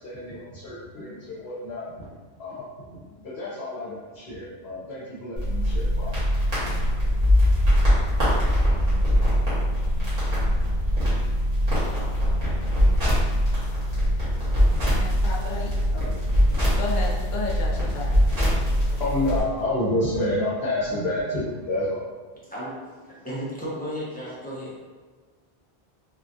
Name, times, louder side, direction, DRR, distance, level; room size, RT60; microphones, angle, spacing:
voice 1, 0.0-2.1 2.4-6.1 18.9-22.0, left 1 dB, 70° left, -7 dB, 1.0 m, -29 dB
sound 1, 5.4-19.4, equal, 40° right, 1.3 m, -22 dB
voice 2, 14.8-16.2 16.8-19.0, left 3 dB, 55° left, -1 dB, 0.6 m, -34 dB
voice 3, 22.4-24.8, equal, 10° left, -8 dB, 0.6 m, -34 dB
3.3 x 2.3 x 2.6 m, 1.4 s
omnidirectional pair, 1.1 m